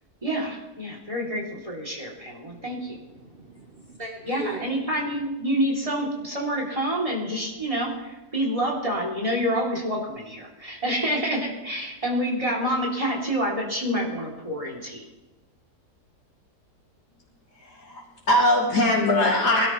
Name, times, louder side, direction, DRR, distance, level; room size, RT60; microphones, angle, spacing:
voice 1, 0.2-2.9 4.3-15.0, equal, 20° right, -2 dB, 3.1 m, -27 dB
voice 2, 2.5-4.9, right 1 dB, 35° right, 1 dB, 1.4 m, -40 dB
voice 3, 17.5-18.0 18.3-19.7, left 1 dB, 90° left, -8 dB, 3.4 m, -21 dB
22.5 x 12.5 x 3.2 m, 1.1 s
omnidirectional pair, 1.7 m